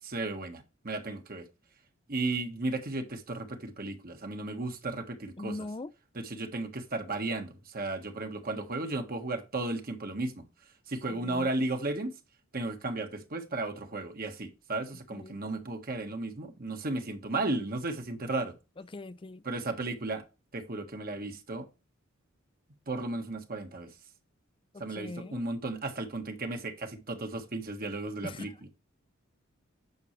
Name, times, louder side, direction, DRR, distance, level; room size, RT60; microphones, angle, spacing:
voice 1, 0.0-1.5 2.1-5.7 6.1-10.4 10.9-12.1 12.5-18.6 19.4-20.2 20.5-21.7 22.9-23.9 24.8-28.5, right 2 dB, 45° right, 1.5 m, -34 dB
voice 2, 5.4-5.9 11.1-11.5 15.1-15.4 18.9-19.4 24.7-25.4 28.2-28.5, left 2 dB, 25° left, 0.5 m, -41 dB
9.4 x 6.3 x 3.2 m
head